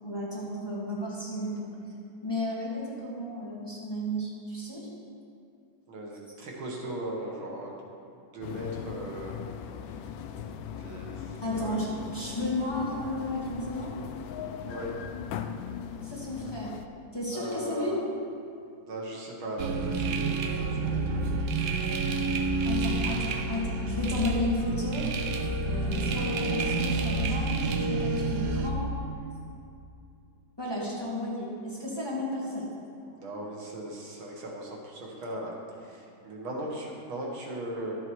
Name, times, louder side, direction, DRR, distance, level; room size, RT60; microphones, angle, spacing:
voice 1, 0.0-1.7 2.2-4.8 11.4-13.9 16.0-16.7 17.1-18.0 22.6-25.1 25.6-28.9 30.6-32.7, left 1 dB, 10° left, -7 dB, 1.8 m, -33 dB
voice 2, 5.9-7.7 8.3-9.4 10.8-11.8 14.7-14.9 17.3-18.0 18.9-21.3 33.1-35.6 35.8-38.0, right 1 dB, 85° right, -1 dB, 2.3 m, -38 dB
sound 1, 8.4-16.9, left 8 dB, 80° left, 1.3 m, -39 dB
sound 2, 19.6-28.7, right 3 dB, 65° right, 1.2 m, -29 dB
12.5 x 7.8 x 4.6 m, 2.6 s
omnidirectional pair, 2.2 m